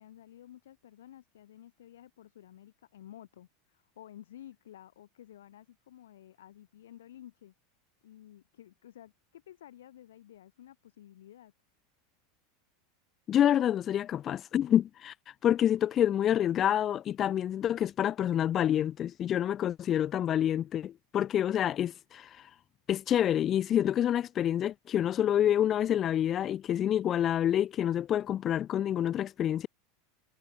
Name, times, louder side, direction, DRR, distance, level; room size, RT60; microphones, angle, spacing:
voice 1, 0.0-7.5 8.0-11.5, left 12 dB, 70° left, 5.9 m, -53 dB
voice 2, 13.3-15.1 15.4-22.5 22.9-29.7, left 10 dB, 35° left, 0.3 m, -27 dB
figure-of-eight pair, 85°, 0 cm